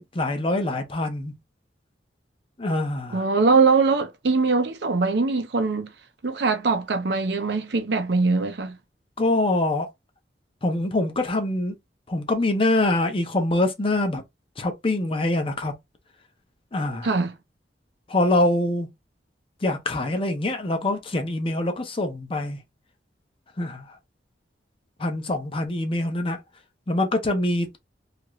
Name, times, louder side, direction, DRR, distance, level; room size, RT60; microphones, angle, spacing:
voice 1, 0.0-1.3 2.6-3.2 9.2-9.9 10.6-11.7 12.1-14.2 14.6-15.7 16.7-17.1 18.1-18.9 19.6-22.6 23.6-24.0 25.0-26.4 26.9-27.8, left 2 dB, 30° left, 0.6 m, -24 dB
voice 2, 3.1-5.9 6.2-8.8 17.0-17.3, right 4 dB, 65° right, 0.6 m, -22 dB
2.8 x 2.4 x 3.0 m
head